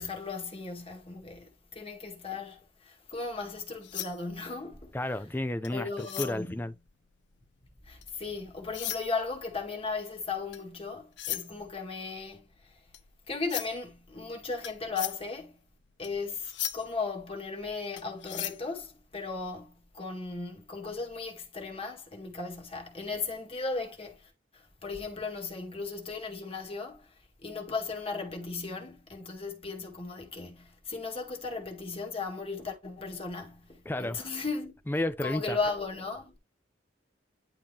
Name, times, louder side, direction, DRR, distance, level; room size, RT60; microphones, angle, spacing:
voice 1, 0.0-5.1 5.7-6.6 7.8-12.8 13.3-15.6 16.0-34.8 35.2-36.3, left 4 dB, 30° left, 1.8 m, -36 dB
sound 1, 3.5-8.3 8.6-19.6, left 13 dB, 70° left, 0.7 m, -40 dB
voice 2, 4.9-6.7 33.9-34.3 34.9-35.6, left 1 dB, 10° left, 0.5 m, -32 dB
10.5 x 3.6 x 2.9 m
head